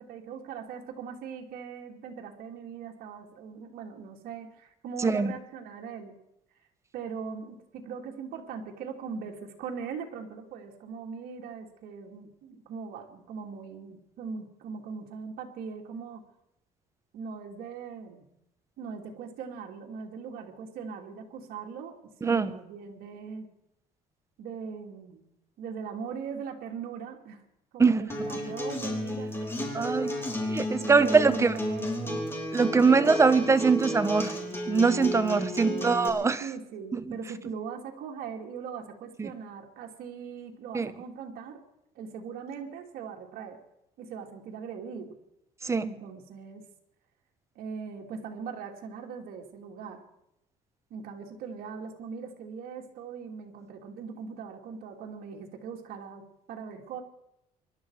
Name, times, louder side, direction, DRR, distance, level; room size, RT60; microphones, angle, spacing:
voice 1, 0.0-6.2 6.9-16.2 17.1-18.2 18.8-23.5 24.4-25.3 25.6-27.4 27.7-30.4 30.8-32.3 32.8-33.3 33.7-33.8 34.0-34.3 35.6-41.6 41.9-43.6 44.0-45.1 45.8-46.6 47.5-50.0 50.9-57.0, right 6 dB, 70° right, 2 dB, 2.7 m, -40 dB
voice 2, 22.2-22.5 27.8-28.1 29.7-30.1 30.5-31.5 32.5-34.3 34.7-36.4 37.1-37.2 39.2-39.3 40.7-40.9 45.6-45.9, right 4 dB, 20° right, 12 dB, 1.0 m, -22 dB
Acoustic guitar, 28.1-36.1, left 1 dB, 15° left, 3.4 m, -32 dB
25.0 x 12.0 x 4.8 m, 0.83 s
cardioid pair, 130°, 16 cm